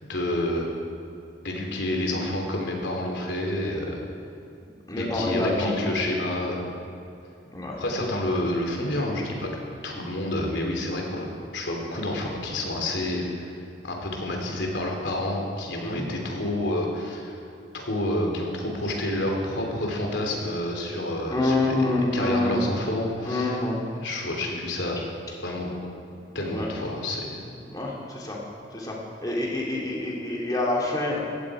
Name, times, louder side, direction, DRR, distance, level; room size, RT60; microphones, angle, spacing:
voice 1, 0.1-0.7 1.4-4.0 5.0-6.7 7.8-9.5 9.8-13.5 13.8-17.4 17.7-23.6 24.0-25.0 25.4-25.7 26.3-27.4, left 1 dB, 75° left, 0 dB, 3.2 m, -29 dB
voice 2, 4.9-5.7 7.5-8.1 15.8-16.1 21.3-22.6 23.2-23.8 26.5-26.7 27.7-28.4 28.7-29.0 29.2-31.2, left 2 dB, 20° left, -3 dB, 2.8 m, -27 dB
17.5 x 15.5 x 4.9 m, 2.6 s
head